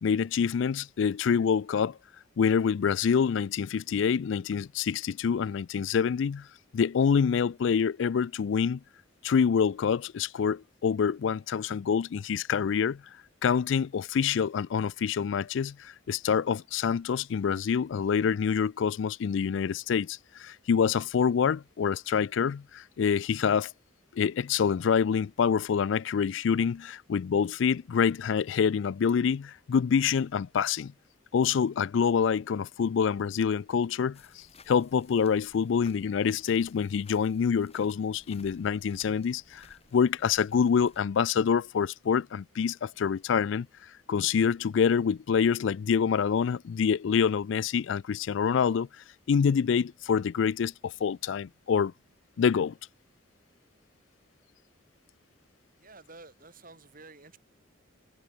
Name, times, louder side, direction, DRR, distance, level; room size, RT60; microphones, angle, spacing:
voice 1, 0.0-2.0 2.4-6.5 6.7-8.8 9.2-13.0 13.4-23.7 24.1-30.9 31.3-39.7 39.9-43.7 44.1-48.9 49.3-51.9 52.4-52.7, left 6 dB, 65° left, 0.4 m, -26 dB
sound 1, 34.1-41.0, left 4 dB, 30° left, 6.0 m, -57 dB
voice 2, 55.8-57.4, right 3 dB, 45° right, 4.6 m, -51 dB
head